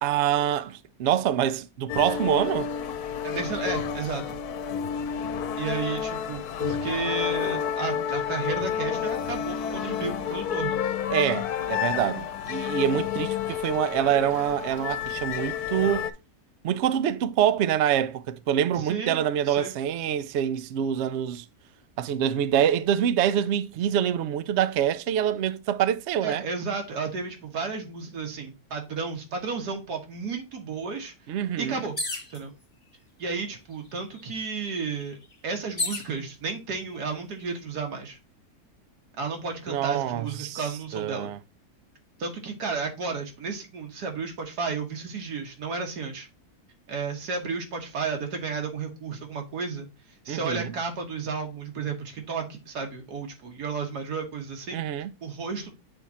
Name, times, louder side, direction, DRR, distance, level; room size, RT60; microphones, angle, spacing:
voice 1, 0.0-2.7 11.1-16.1 16.6-21.4 22.0-26.4 31.3-31.8 39.7-41.4 50.3-50.7 54.7-55.1, right 10 dB, 65° right, 0.7 m, -26 dB
sound 1, 1.9-16.1, left 8 dB, 75° left, 1.2 m, -30 dB
voice 2, 3.2-4.4 5.6-10.8 18.7-19.8 26.2-31.1 31.6-32.0 32.3-32.5 33.2-35.2 35.4-38.2 39.2-41.3 42.2-46.3 46.9-49.9 50.3-54.8 55.2-55.7, right 4 dB, 90° right, 1.9 m, -32 dB
sound 2, 32.0-32.4 33.3-33.4 33.7-36.1 36.9-37.4, left 2 dB, 25° left, 1.2 m, -33 dB
7.7 x 3.6 x 4.1 m
omnidirectional pair, 1.7 m